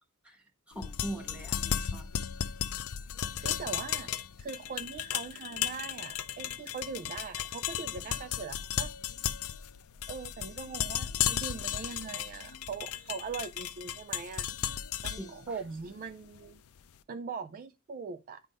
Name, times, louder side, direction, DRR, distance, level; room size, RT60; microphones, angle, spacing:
voice 1, 0.2-2.1 3.3-3.5 15.0-15.4, right 1 dB, 5° right, 1.3 m, -42 dB
sound 1, 0.7-16.8, left 10 dB, 75° left, 0.5 m, -35 dB
voice 2, 3.4-8.9 10.1-16.6 17.1-18.4, right 5 dB, 40° right, 0.3 m, -41 dB
9.6 x 3.6 x 4.0 m
head